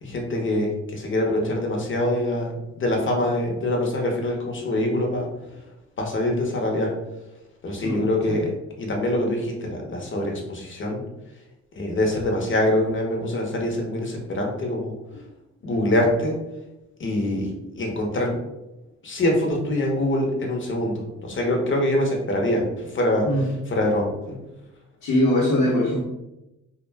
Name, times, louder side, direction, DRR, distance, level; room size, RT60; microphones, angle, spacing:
voice 1, 0.0-5.3 6.0-6.9 7.6-8.5 8.8-11.0 11.8-14.9 15.6-16.3 17.0-18.4 19.0-22.7 22.9-24.4, left 1 dB, 40° left, 0 dB, 0.8 m, -24 dB
voice 2, 25.0-26.0, left 1 dB, 75° left, -7 dB, 0.8 m, -21 dB
2.3 x 2.2 x 3.3 m, 0.96 s
cardioid pair, 90°, 30 cm